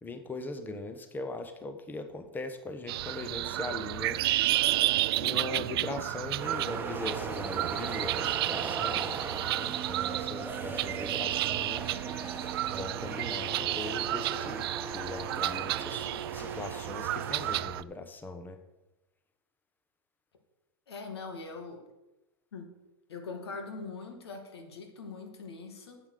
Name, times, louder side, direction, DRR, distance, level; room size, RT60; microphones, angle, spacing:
voice 1, 0.0-4.2 5.2-12.0 12.6-14.6 14.9-18.6, left 2 dB, 15° left, 8 dB, 1.1 m, -40 dB
sound 1, 2.9-17.8, right 15 dB, 75° right, 0.4 m, -32 dB
sound 2, 6.4-17.6, right 4 dB, 15° right, 1.4 m, -39 dB
voice 2, 20.9-21.8 22.5-22.7 23.1-26.0, left 4 dB, 90° left, 5 dB, 2.2 m, -42 dB
8.5 x 7.7 x 6.7 m, 1.0 s
hypercardioid pair, 115°, 13 cm